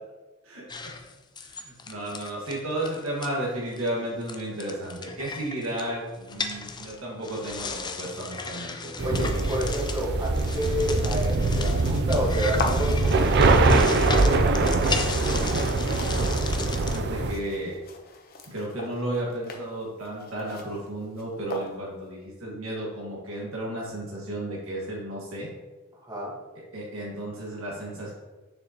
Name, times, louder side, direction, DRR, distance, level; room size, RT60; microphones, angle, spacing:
voice 1, 0.4-1.0 1.4-8.9 16.8-17.8 18.5-25.5 26.7-28.1, right 1 dB, 75° right, -4 dB, 1.9 m, -33 dB
sound 1, 0.7-3.3 3.7-3.9 4.2-17.0, left 4 dB, 20° left, 0.5 m, -36 dB
voice 2, 9.0-14.8 26.1-26.3, equal, 20° right, -3 dB, 1.6 m, -30 dB
sound 2, 9.0-17.3, right 3 dB, 55° right, 0.5 m, -23 dB
sound 3, 12.5-22.1, left 3 dB, 45° left, 0.9 m, -39 dB
6.7 x 6.7 x 3.0 m, 1.2 s
head